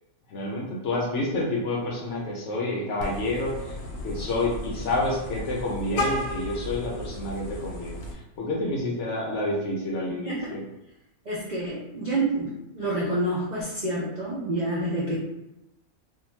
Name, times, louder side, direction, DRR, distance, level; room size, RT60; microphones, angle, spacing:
voice 1, 0.3-3.8 4.0-10.6, left 2 dB, 65° left, -3 dB, 0.8 m, -29 dB
Vehicle horn car horn honking, 3.0-8.1, left 1 dB, 85° left, 1.1 m, -34 dB
voice 2, 10.2-10.6 11.3-15.2, right 1 dB, 80° right, -7 dB, 0.4 m, -28 dB
2.6 x 2.1 x 3.0 m, 0.92 s
omnidirectional pair, 1.6 m